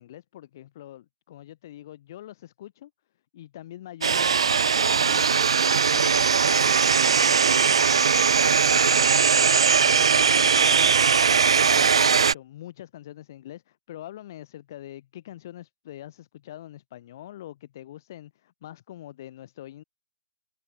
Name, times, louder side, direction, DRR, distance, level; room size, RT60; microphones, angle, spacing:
voice 1, 0.0-2.9 3.3-7.4 7.9-19.8, left 13 dB, 40° left, 3.4 m, -44 dB
sound 1, 4.0-12.3, right 6 dB, 85° right, 0.4 m, -20 dB
hypercardioid pair, 160°, 3 cm